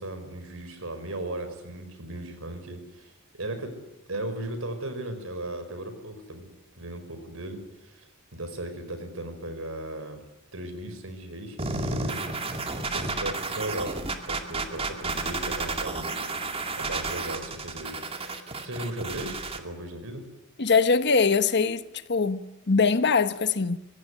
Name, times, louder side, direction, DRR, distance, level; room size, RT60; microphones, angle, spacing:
voice 1, 0.0-3.8 4.1-6.5 6.8-10.2 10.5-12.5 12.9-16.2 16.8-20.3, right 1 dB, 65° right, 5.2 m, -37 dB
sound 1, 11.6-19.6, right 3 dB, 25° right, 2.2 m, -32 dB
voice 2, 20.6-23.8, left 5 dB, 50° left, 1.1 m, -23 dB
25.5 x 17.0 x 9.9 m
head